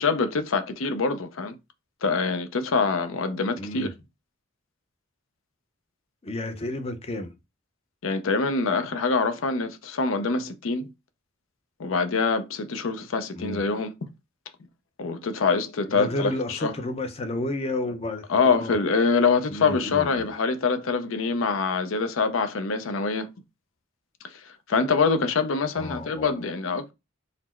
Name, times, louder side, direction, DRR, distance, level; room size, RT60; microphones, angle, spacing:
voice 1, 0.0-1.6 2.0-3.9 8.0-10.9 11.8-13.9 15.0-16.7 18.3-23.3 24.2-24.3 24.7-26.9, left 4 dB, 75° left, 0.5 m, -25 dB
voice 2, 3.6-3.9 6.2-7.3 13.3-13.6 15.9-18.7 19.5-20.3 25.8-26.3, left 1 dB, 30° left, 0.5 m, -31 dB
4.1 x 2.0 x 4.3 m
head